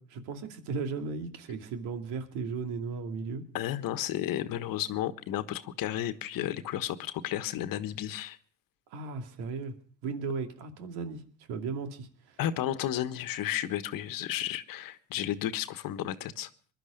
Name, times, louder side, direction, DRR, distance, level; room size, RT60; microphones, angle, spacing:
voice 1, 0.0-3.4 8.9-9.7 10.0-11.2 11.5-12.4, right 4 dB, 70° right, 6 dB, 2.6 m, -36 dB
voice 2, 3.5-8.4 12.4-16.5, left 12 dB, 55° left, 12 dB, 1.4 m, -33 dB
21.5 x 12.0 x 5.2 m, 0.43 s
hypercardioid pair, 80°, 40 cm